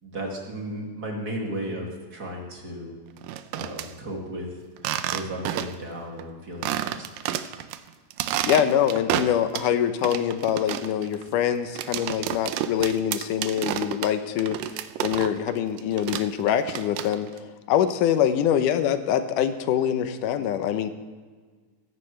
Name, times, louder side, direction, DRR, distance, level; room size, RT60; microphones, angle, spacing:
voice 1, 0.0-2.9 3.5-4.5 4.8-7.1, right 1 dB, 30° right, -1 dB, 2.4 m, -34 dB
sound 1, 3.2-3.9 4.8-5.9 6.2-6.3 6.6-7.8 8.1-9.7 10.0-15.5 15.8-17.4, right 12 dB, 80° right, 2.3 m, -30 dB
voice 2, 8.4-14.6 15.0-17.3 17.7-20.9, left 9 dB, 75° left, 9 dB, 2.1 m, -24 dB
17.5 x 15.0 x 3.3 m, 1.5 s
omnidirectional pair, 4.3 m